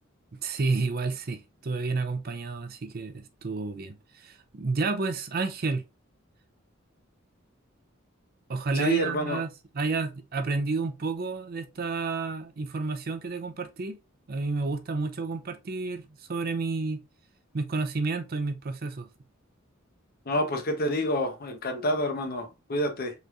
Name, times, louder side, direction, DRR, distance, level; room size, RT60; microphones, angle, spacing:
voice 1, 0.4-5.8 8.5-9.5 9.7-14.0 14.3-17.0 17.5-19.1, right 3 dB, 50° right, 0.5 m, -30 dB
voice 2, 8.7-9.4 20.3-23.1, equal, 50° left, 0.9 m, -28 dB
5.3 x 3.1 x 2.4 m
head